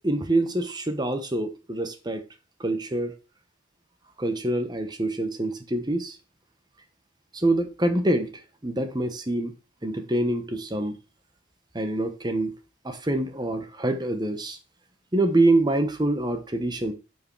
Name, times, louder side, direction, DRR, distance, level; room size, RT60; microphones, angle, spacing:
voice 1, 0.0-2.2 2.6-3.1 4.2-6.1 7.3-8.3 8.6-9.5 9.8-11.0 11.7-12.5 12.8-14.6 15.1-16.9, right 2 dB, 20° right, 1.0 m, -25 dB
8.6 x 4.8 x 4.7 m
head